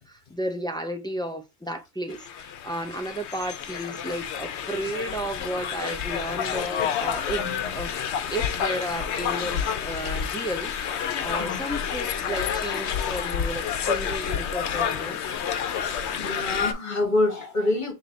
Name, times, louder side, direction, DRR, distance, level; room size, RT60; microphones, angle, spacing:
voice 1, 0.0-7.4 7.7-10.7 11.2-15.2, right 1 dB, 5° left, 0.3 m, -33 dB
sound 1, 2.1-16.7, left 8 dB, 80° left, 0.9 m, -29 dB
voice 2, 7.4-7.7 11.4-11.6 16.2-17.9, left 2 dB, 45° left, 1.5 m, -26 dB
3.9 x 3.2 x 3.1 m
omnidirectional pair, 1.1 m